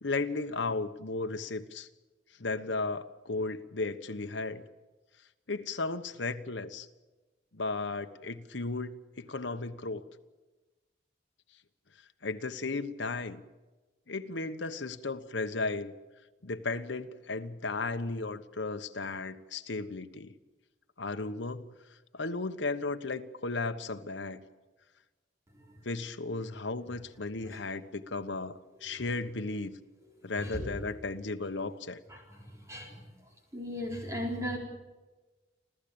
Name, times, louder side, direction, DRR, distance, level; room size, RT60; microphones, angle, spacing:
voice 1, 0.0-1.9 2.4-4.6 5.5-6.9 7.5-10.0 12.2-13.4 14.1-15.9 16.4-20.3 21.0-21.7 22.1-24.4 25.8-29.8 30.2-32.0, left 3 dB, 85° left, 8 dB, 1.2 m, -35 dB
voice 2, 30.4-30.8 32.1-33.1 33.5-34.6, equal, 15° right, 1 dB, 4.3 m, -38 dB
29.0 x 13.5 x 8.7 m, 1.2 s
head